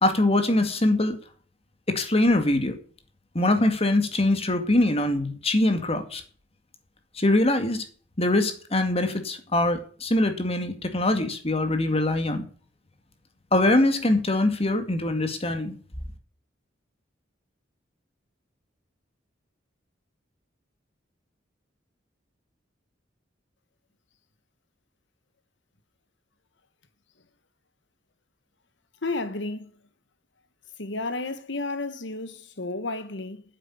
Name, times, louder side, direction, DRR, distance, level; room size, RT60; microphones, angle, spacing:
voice 1, 0.0-1.2 1.9-2.8 3.3-6.2 7.2-7.8 8.2-12.4 13.5-15.7, left 1 dB, 30° left, 2.1 m, -23 dB
voice 2, 29.0-29.7 30.8-33.4, left 2 dB, 70° left, 1.4 m, -32 dB
9.2 x 8.3 x 8.6 m
head